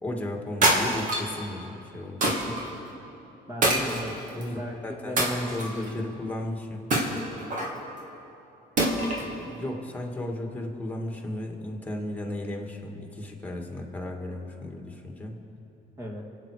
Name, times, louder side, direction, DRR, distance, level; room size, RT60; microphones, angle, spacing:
voice 1, 0.0-2.6 4.3-6.9 9.3-15.4, left 1 dB, 10° left, 2 dB, 2.0 m, -35 dB
sound 1, 0.6-1.4 2.2-2.6 3.6-4.4 5.2-5.9 6.9-7.8 8.8-9.3, right 1 dB, 50° right, 2.5 m, -25 dB
voice 2, 3.5-4.1 4.5-6.0 16.0-16.2, equal, 15° right, -1 dB, 2.2 m, -36 dB
25.5 x 8.7 x 5.0 m, 2.9 s
cardioid pair, 110°, 17 cm